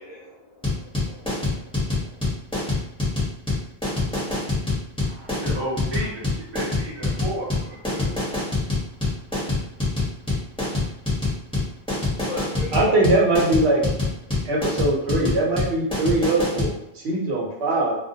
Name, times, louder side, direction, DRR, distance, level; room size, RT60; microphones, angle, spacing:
voice 1, 0.0-2.0 12.2-12.9, left 3 dB, 40° left, -6 dB, 0.8 m, -39 dB
sound 1, 0.6-16.7, left 2 dB, 5° left, 0.8 m, -25 dB
voice 2, 5.0-8.3, right 1 dB, 30° right, -5 dB, 0.6 m, -33 dB
voice 3, 12.7-13.8 14.5-18.0, right 2 dB, 70° right, -2 dB, 0.9 m, -21 dB
2.2 x 2.1 x 2.7 m, 0.83 s
omnidirectional pair, 1.1 m